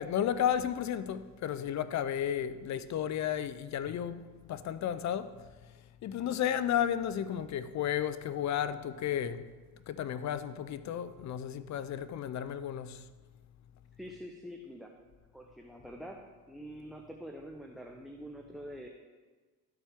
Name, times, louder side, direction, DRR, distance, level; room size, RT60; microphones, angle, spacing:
voice 1, 0.0-5.4 6.0-9.4 9.9-13.1, left 9 dB, 45° left, 0.5 m, -33 dB
voice 2, 14.0-14.9 15.3-16.2 16.5-18.9, equal, ahead, 0.7 m, -45 dB
12.5 x 4.3 x 3.6 m
supercardioid pair, 65°, 39 cm